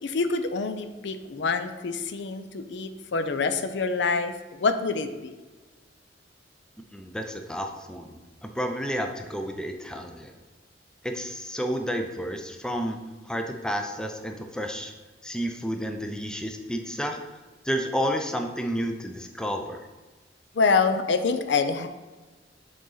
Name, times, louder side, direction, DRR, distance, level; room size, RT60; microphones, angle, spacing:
voice 1, 0.0-5.3 20.5-21.9, left 4 dB, 70° left, 9 dB, 0.5 m, -26 dB
voice 2, 6.9-8.2 8.4-10.3 11.0-13.0 13.3-14.9 15.2-17.2 17.6-19.8, equal, 5° left, 4 dB, 0.5 m, -31 dB
7.7 x 4.0 x 3.9 m, 1.3 s
head